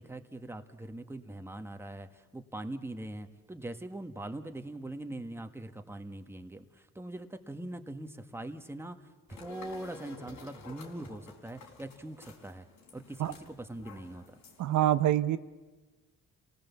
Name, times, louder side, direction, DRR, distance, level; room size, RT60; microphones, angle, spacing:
voice 1, 0.0-9.0 9.3-12.7 12.9-14.4, right 1 dB, 10° right, 7 dB, 1.6 m, -42 dB
sound 1, 9.3-14.8, left 3 dB, 70° left, 4.3 m, -52 dB
voice 2, 14.6-15.4, right 13 dB, 75° right, 11 dB, 0.8 m, -25 dB
29.0 x 18.0 x 7.3 m, 1.2 s
cardioid pair, 90°, 30 cm